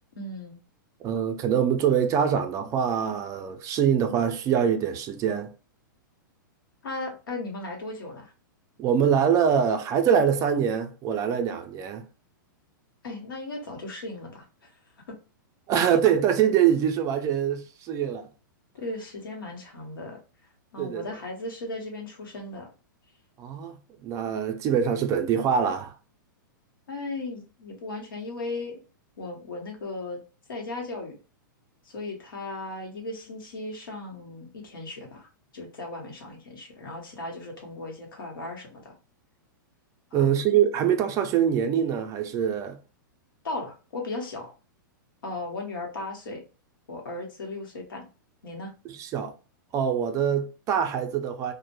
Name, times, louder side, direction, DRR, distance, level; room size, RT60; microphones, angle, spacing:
voice 1, 0.2-0.6 6.8-8.3 13.0-14.7 15.1-15.2 18.7-20.2 20.7-22.7 26.9-28.8 29.2-30.2 30.5-31.2 31.8-39.0 40.1-40.4 43.4-44.5 45.2-46.4 46.9-48.1 48.4-48.7, left 2 dB, 85° left, 0.9 m, -36 dB
voice 2, 1.0-5.5 8.8-12.0 15.7-18.3 20.8-21.0 23.4-25.9 40.1-42.8 48.8-49.3 49.7-51.5, right 8 dB, 30° right, 0.3 m, -24 dB
2.1 x 2.1 x 2.8 m
hypercardioid pair, 120°, 11 cm